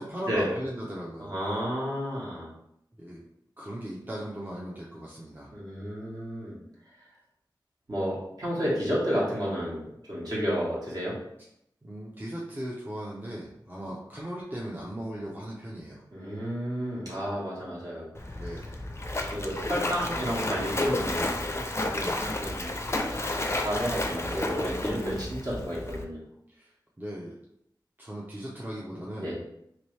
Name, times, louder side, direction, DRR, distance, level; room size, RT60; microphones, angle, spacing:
voice 1, 0.0-1.4 3.0-3.2 3.6-5.5 11.8-16.0 18.4-18.7 20.8-21.4 21.9-22.3 24.7-25.3 26.5-27.4 28.0-29.3, equal, 25° right, -4 dB, 0.6 m, -38 dB
voice 2, 1.2-2.5 5.5-6.6 7.9-11.1 16.1-18.5 19.3-21.6 21.9-22.0 22.4-22.8 23.1-26.2 29.2-29.4, equal, 50° right, -6 dB, 1.4 m, -31 dB
Splash splatter, 18.1-26.0, left 2 dB, 30° left, 0.4 m, -32 dB
3.0 x 2.9 x 3.2 m, 0.77 s
wide cardioid pair, 65°, 8 cm